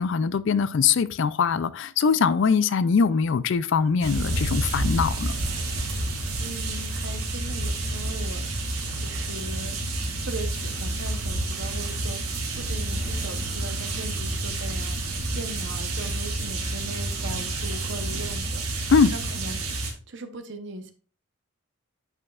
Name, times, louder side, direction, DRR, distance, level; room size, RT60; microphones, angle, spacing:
voice 1, 0.0-5.4 18.9-19.1, left 5 dB, 55° left, 0.4 m, -22 dB
sound 1, 4.0-19.9, right 2 dB, 85° right, 2.0 m, -29 dB
voice 2, 6.4-9.8 10.2-18.6 19.1-19.6 19.8-20.9, right 2 dB, 55° right, 0.9 m, -39 dB
9.3 x 5.5 x 2.4 m
head